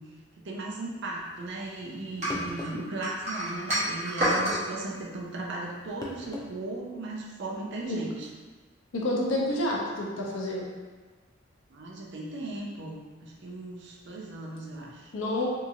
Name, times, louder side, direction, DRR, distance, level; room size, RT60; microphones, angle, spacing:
voice 1, 0.0-8.3 11.7-15.1, right 2 dB, 65° right, -2 dB, 0.5 m, -37 dB
sound 1, 1.9-2.0 2.3-2.9 4.3-4.5 6.0-6.5 6.9-7.0 8.1-8.3, left 2 dB, 20° left, 0.3 m, -39 dB
sound 2, 2.2-4.6, equal, 35° right, 0.9 m, -28 dB
voice 2, 8.9-10.7 15.1-15.5, left 1 dB, 80° left, -2 dB, 0.6 m, -29 dB
2.8 x 2.6 x 2.4 m, 1.3 s
head